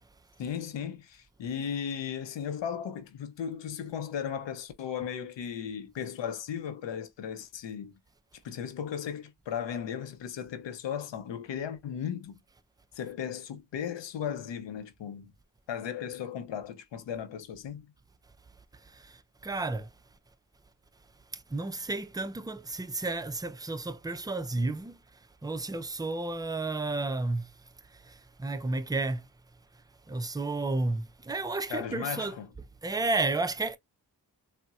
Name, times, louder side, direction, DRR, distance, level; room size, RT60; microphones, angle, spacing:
voice 1, 0.4-7.9 8.4-12.4 13.0-15.3 15.7-17.9 31.7-32.5, left 8 dB, 85° left, 0.6 m, -36 dB
voice 2, 18.9-19.9 21.3-25.0 25.4-27.5 27.9-29.3 30.1-32.4 32.8-33.8, right 2 dB, 10° right, 0.3 m, -32 dB
3.9 x 2.1 x 2.3 m
cardioid pair, 50°, 42 cm